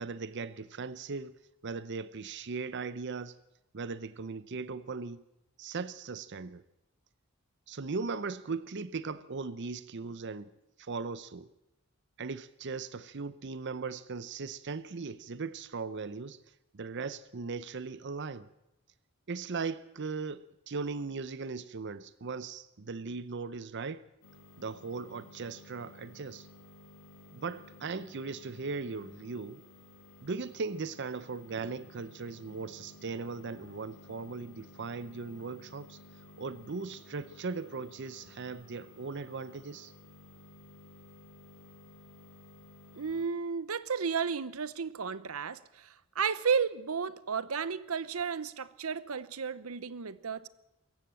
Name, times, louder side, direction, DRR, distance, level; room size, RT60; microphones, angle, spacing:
voice 1, 0.0-1.4 1.6-3.4 3.7-5.2 5.6-6.6 7.7-10.5 10.8-11.5 12.2-16.4 16.7-18.5 19.3-24.0 24.6-26.5 27.3-29.6 30.2-36.0 36.4-39.9, right 4 dB, 55° right, 0.7 m, -38 dB
sound 1, 24.2-43.3, left 1 dB, 90° left, 5.8 m, -55 dB
voice 2, 43.0-50.5, right 6 dB, 90° right, 0.9 m, -33 dB
24.5 x 14.5 x 7.6 m
head